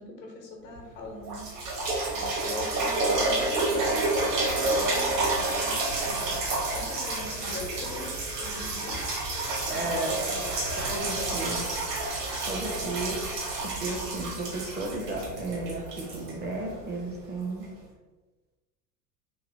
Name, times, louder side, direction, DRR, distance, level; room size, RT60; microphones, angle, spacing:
voice 1, 0.0-1.8 2.1-8.1 8.4-9.1 9.6-10.5 12.7-12.9, left 2 dB, 80° left, 1 dB, 0.9 m, -42 dB
sound 1, 0.8-0.9 1.3-17.0 17.6-17.7, right 2 dB, 70° right, 1.2 m, -29 dB
voice 2, 9.7-10.1 10.8-11.6 12.4-13.2 13.6-17.7, right 2 dB, 20° right, 1 dB, 0.5 m, -34 dB
3.1 x 2.7 x 2.6 m, 1.2 s
figure-of-eight pair, 75°, 48 cm